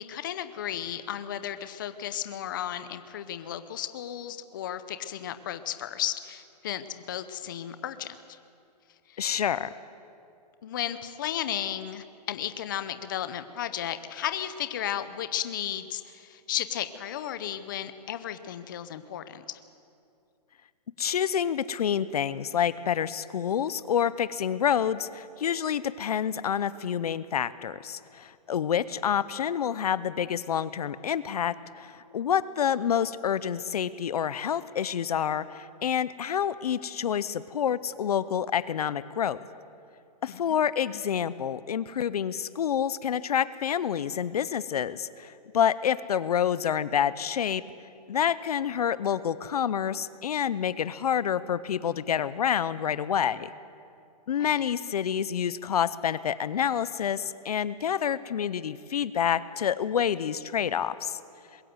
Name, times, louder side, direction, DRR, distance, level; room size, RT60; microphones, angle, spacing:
voice 1, 0.0-8.4 9.1-9.2 10.6-19.4 40.3-40.6 54.4-54.6, left 11 dB, 30° left, 11 dB, 0.6 m, -34 dB
voice 2, 9.2-9.7 21.0-39.4 40.2-47.6 48.1-53.5 54.3-61.2, left 8 dB, 65° left, 17 dB, 0.7 m, -28 dB
21.5 x 15.5 x 7.9 m, 2.5 s
hypercardioid pair, 175°, 21 cm